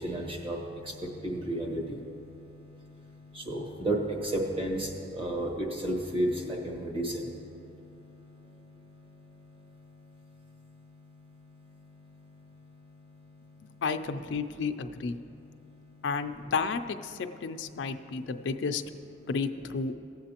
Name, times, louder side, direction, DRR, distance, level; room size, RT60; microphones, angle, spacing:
voice 1, 0.0-0.6 1.2-1.8 3.5-3.9 4.3-4.8 5.2-5.5 5.8-7.0, right 1 dB, 30° right, 0 dB, 1.3 m, -31 dB
voice 2, 13.8-15.2 16.0-18.8 19.3-19.9, left 5 dB, 75° left, 8 dB, 0.4 m, -32 dB
18.0 x 7.6 x 2.9 m, 2.6 s
head